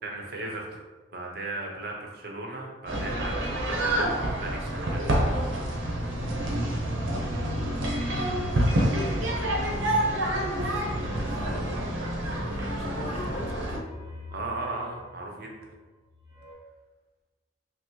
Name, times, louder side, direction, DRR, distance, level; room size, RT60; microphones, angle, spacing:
voice 1, 0.0-0.8 1.1-5.2 5.6-5.8 14.3-15.7, right 2 dB, 55° right, 0 dB, 0.7 m, -36 dB
sound 1, 2.9-13.8, right 1 dB, 90° right, 0.7 m, -28 dB
sound 2, 6.8-16.5, left 2 dB, 20° right, 1.0 m, -45 dB
voice 2, 9.5-11.3 12.2-13.9, left 1 dB, 30° left, 1 dB, 0.4 m, -42 dB
5.7 x 2.0 x 3.0 m, 1.2 s
head